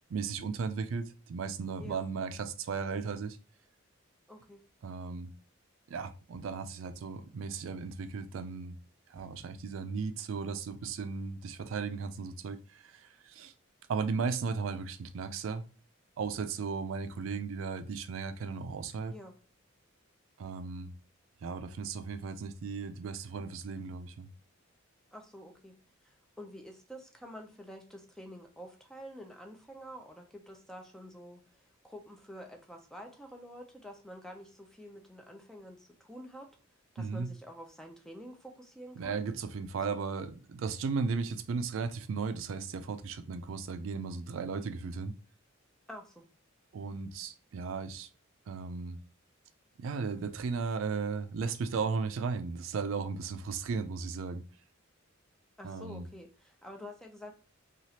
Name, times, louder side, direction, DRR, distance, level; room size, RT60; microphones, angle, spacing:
voice 1, 0.1-3.4 4.8-5.3 5.9-8.8 9.1-13.5 13.9-15.6 16.2-19.1 20.4-20.9 21.4-24.3 37.0-37.3 39.0-45.2 46.7-48.1 48.5-49.0 49.8-54.4 55.6-56.0, right 5 dB, 70° right, 0.4 m, -36 dB
voice 2, 4.3-4.6 19.1-19.3 25.1-25.7 26.0-36.5 36.9-39.2 45.9-46.2 55.6-57.3, equal, 5° left, 0.4 m, -48 dB
3.0 x 2.4 x 2.8 m
head